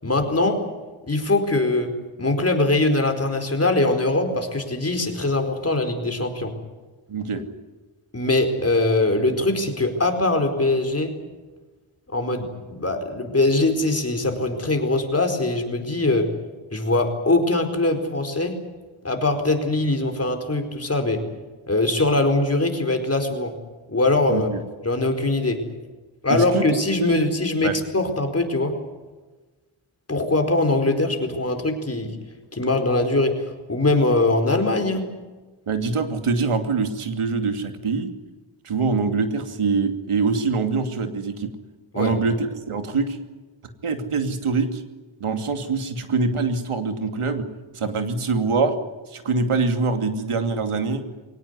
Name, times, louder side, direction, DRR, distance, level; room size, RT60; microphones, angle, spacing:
voice 1, 0.0-0.6 1.1-1.9 2.2-6.5 8.1-11.1 12.1-16.3 16.7-18.6 19.0-21.2 21.7-23.5 23.9-24.5 24.8-25.6 26.2-28.8 30.1-32.1 32.5-35.0 41.9-42.1, left 2 dB, 30° left, 5 dB, 4.5 m, -22 dB
voice 2, 7.1-7.5 24.3-24.6 26.3-26.6 27.0-27.1 27.6-27.8 35.7-38.1 38.6-41.5 41.9-43.2 43.8-44.8 45.2-47.5 47.7-48.7 49.1-51.0, right 4 dB, 90° right, 7 dB, 2.7 m, -24 dB
23.5 x 18.5 x 9.6 m, 1.2 s
wide cardioid pair, 95°, 49 cm